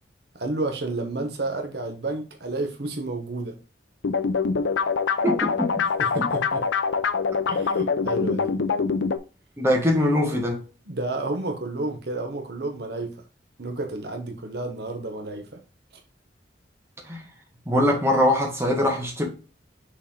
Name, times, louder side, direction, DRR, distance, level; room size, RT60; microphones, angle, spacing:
voice 1, 0.3-3.6 6.0-6.7 7.5-8.6 10.9-13.2 13.6-15.6, right 2 dB, 60° right, 1.0 m, -31 dB
sound 1, 4.0-9.2, left 5 dB, 90° left, 0.6 m, -24 dB
voice 2, 5.2-5.7 9.6-10.6 17.1-17.2 17.7-19.3, left 1 dB, 15° right, 1.7 m, -22 dB
6.5 x 4.0 x 3.8 m
head